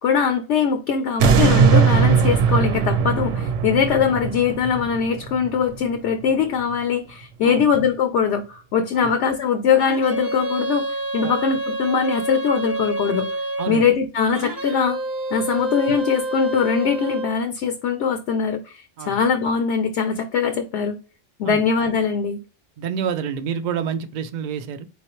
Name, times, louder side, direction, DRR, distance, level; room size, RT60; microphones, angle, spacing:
voice 1, 0.0-10.9 11.1-13.3 13.7-15.0 15.3-21.0 21.4-22.4, left 6 dB, 70° left, 0.9 m, -21 dB
sound 1, 1.2-6.3 6.8-6.9, right 6 dB, 85° right, 0.9 m, -19 dB
sound 2, 9.8-13.8 14.3-17.4, right 2 dB, 20° right, 0.9 m, -28 dB
voice 2, 22.8-24.9, right 7 dB, 65° right, 0.4 m, -28 dB
4.3 x 3.8 x 3.0 m
omnidirectional pair, 1.3 m